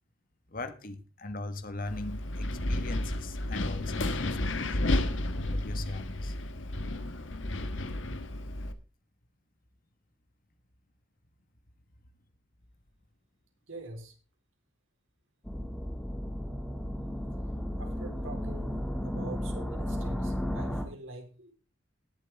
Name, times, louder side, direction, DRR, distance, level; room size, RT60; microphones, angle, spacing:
voice 1, 0.5-4.8 5.5-6.3, left 2 dB, 45° left, 1.5 m, -40 dB
Wind, 1.9-8.7, left 1 dB, 70° left, 1.4 m, -32 dB
voice 2, 13.7-14.1 17.8-21.5, right 2 dB, 85° right, 3.9 m, -45 dB
sound 1, 15.4-20.9, equal, 5° left, 2.2 m, -34 dB
19.5 x 7.7 x 3.5 m
head